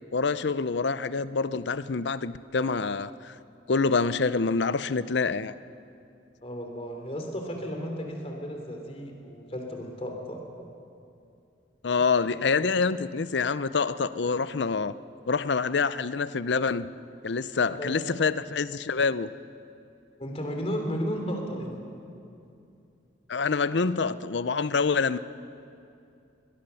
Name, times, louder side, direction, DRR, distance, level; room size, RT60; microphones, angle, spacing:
voice 1, 0.1-3.4 3.7-5.5 11.8-14.9 15.3-16.9 17.2-19.3 23.3-25.2, left 4 dB, 70° left, 15 dB, 0.6 m, -26 dB
voice 2, 6.4-10.4 12.5-12.7 17.7-18.3 20.2-21.8, equal, 35° left, 3 dB, 3.3 m, -34 dB
22.5 x 20.0 x 7.0 m, 2.6 s
head